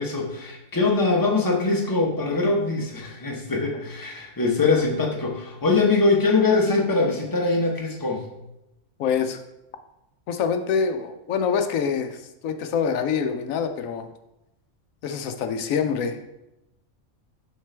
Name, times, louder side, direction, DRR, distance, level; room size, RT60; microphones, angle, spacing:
voice 1, 0.0-8.3, left 3 dB, 20° left, 0 dB, 0.9 m, -22 dB
voice 2, 9.0-9.4 10.3-14.1 15.0-16.2, left 6 dB, 90° left, 7 dB, 1.1 m, -25 dB
6.4 x 5.8 x 3.3 m, 0.89 s
omnidirectional pair, 1.4 m